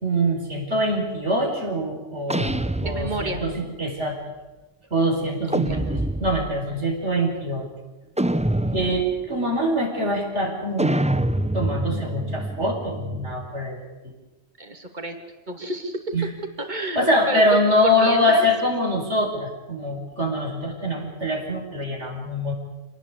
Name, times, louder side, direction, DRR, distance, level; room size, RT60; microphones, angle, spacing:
voice 1, 0.0-4.2 4.9-7.7 8.7-11.1 11.5-13.8 16.1-16.3 17.0-22.5, equal, 70° right, 1 dB, 5.5 m, -24 dB
sound 1, 2.3-3.6 5.5-6.6 8.2-9.2 10.8-13.5, right 1 dB, 10° right, 0.6 m, -26 dB
voice 2, 2.8-3.4 5.6-5.9 14.6-15.2 15.5-16.3 16.6-18.5, right 2 dB, 40° right, 6 dB, 2.9 m, -30 dB
26.5 x 19.0 x 8.3 m, 1.1 s
omnidirectional pair, 1.2 m